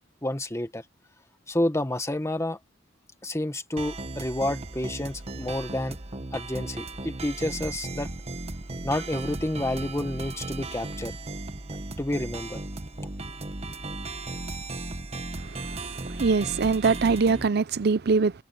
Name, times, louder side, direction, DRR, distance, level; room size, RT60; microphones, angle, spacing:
voice 1, 0.2-0.8 1.5-2.6 3.2-6.0 6.3-8.1 8.8-11.1 12.0-12.6, left 1 dB, 15° left, 1.5 m, -29 dB
sound 1, 3.8-17.5, right 2 dB, 35° right, 1.2 m, -36 dB
voice 2, 15.5-18.3, right 4 dB, 55° right, 0.6 m, -23 dB
head